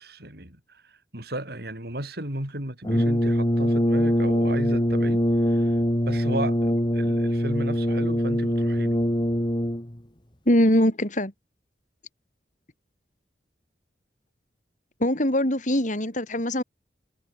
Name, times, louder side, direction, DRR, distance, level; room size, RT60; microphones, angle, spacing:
voice 1, 0.0-5.8 6.0-9.0, right 1 dB, 60° right, 6.0 m, -35 dB
Brass instrument, 2.8-10.0, equal, 25° left, 2.7 m, -23 dB
voice 2, 10.5-11.3 15.0-16.6, left 1 dB, 45° left, 5.2 m, -22 dB
head